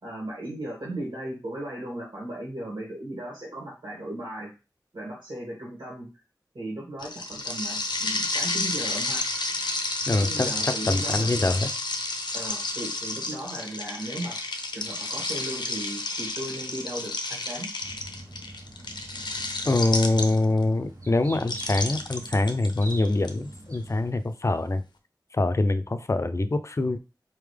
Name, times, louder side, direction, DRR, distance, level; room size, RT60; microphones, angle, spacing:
voice 1, 0.0-4.5 4.9-6.1 6.5-9.3 10.1-11.3 12.3-14.4 14.7-17.7, right 1 dB, 80° right, 2.1 m, -36 dB
sound 1, 7.0-20.6 21.4-23.3, left 2 dB, 80° left, 0.7 m, -31 dB
voice 2, 10.1-11.7 19.6-24.8 25.3-27.0, left 2 dB, 40° left, 0.5 m, -24 dB
sound 2, 17.8-24.1, right 1 dB, 45° right, 1.0 m, -44 dB
4.2 x 3.6 x 3.4 m
cardioid pair, 40°, 8 cm